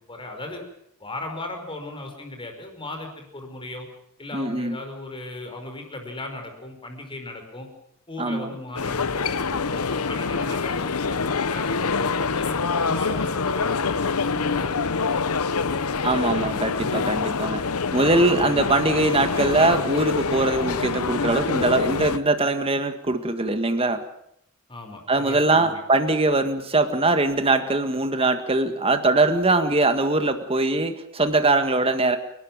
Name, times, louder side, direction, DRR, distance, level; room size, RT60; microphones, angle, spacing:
voice 1, 0.1-0.6 1.0-3.9 4.2-7.7 8.1-16.1 24.7-25.8, left 2 dB, 25° left, 4 dB, 5.2 m, -37 dB
voice 2, 4.3-4.8 8.2-8.5 16.0-17.6 17.9-24.0 25.1-32.2, right 2 dB, 25° right, 8 dB, 1.8 m, -22 dB
sound 1, 8.8-22.2, left 4 dB, 80° left, 1.0 m, -25 dB
29.5 x 12.5 x 8.9 m, 0.74 s
head